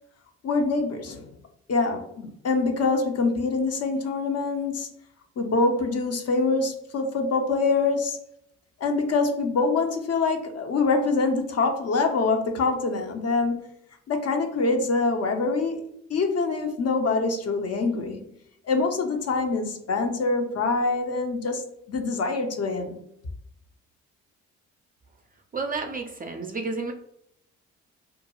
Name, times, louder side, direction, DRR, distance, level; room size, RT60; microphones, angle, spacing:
voice 1, 0.4-1.3 1.7-4.9 5.4-8.2 8.8-13.7 14.1-15.8 16.1-18.2 18.6-21.6 21.9-23.0, left 3 dB, 40° left, 4 dB, 0.6 m, -25 dB
voice 2, 25.5-26.9, right 4 dB, 25° right, 3 dB, 0.4 m, -31 dB
2.5 x 2.2 x 2.9 m, 0.76 s
hypercardioid pair, 45°, 38 cm